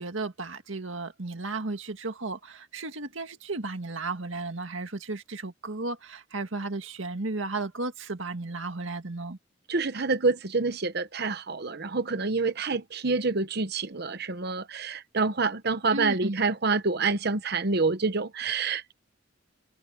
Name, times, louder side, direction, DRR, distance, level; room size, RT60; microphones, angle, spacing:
voice 1, 0.0-9.4 15.9-16.4, right 3 dB, 80° right, 1.9 m, -34 dB
voice 2, 9.7-18.9, right 4 dB, 55° right, 1.0 m, -27 dB
head